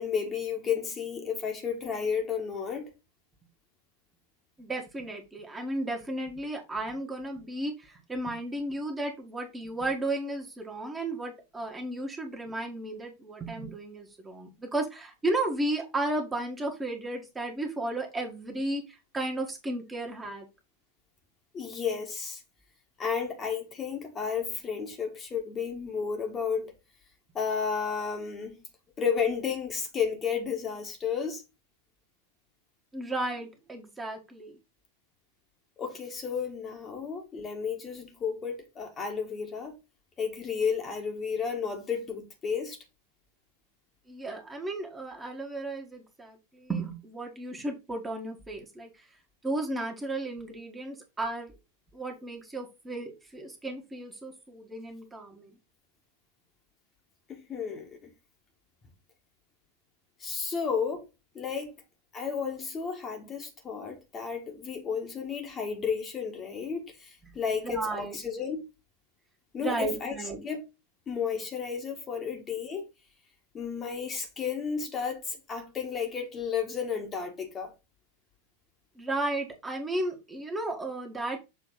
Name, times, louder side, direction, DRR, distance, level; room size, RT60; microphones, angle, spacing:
voice 1, 0.0-2.9 21.5-22.4 23.0-26.7 27.3-28.6 29.0-31.4 35.8-39.7 40.2-42.8 57.3-58.1 60.2-61.1 61.3-61.8 62.1-68.6 69.5-70.6 71.1-72.8 73.5-77.7, left 6 dB, 25° left, 1.6 m, -32 dB
voice 2, 4.6-20.4 32.9-34.6 44.1-48.9 49.4-51.5 51.9-55.6 67.2-67.3 67.6-68.2 69.6-70.4 79.0-81.4, right 2 dB, 10° right, 1.7 m, -34 dB
7.1 x 3.7 x 3.8 m
figure-of-eight pair, 90°, 0 cm